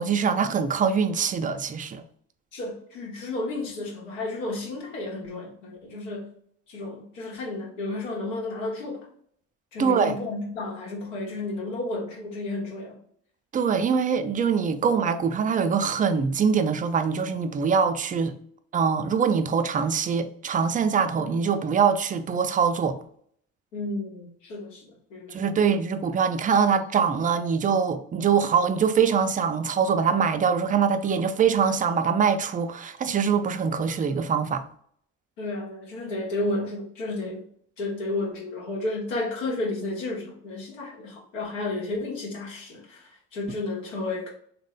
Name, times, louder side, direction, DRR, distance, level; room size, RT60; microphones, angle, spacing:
voice 1, 0.0-2.0 9.8-10.2 13.5-18.3 18.7-23.0 25.3-34.6, right 6 dB, 25° right, 0.3 m, -23 dB
voice 2, 2.5-6.3 6.7-9.0 9.7-13.0 23.7-25.6 35.4-37.4 37.8-44.3, left 2 dB, 90° left, 0.9 m, -32 dB
3.1 x 2.1 x 3.8 m
hypercardioid pair, 50°, 37 cm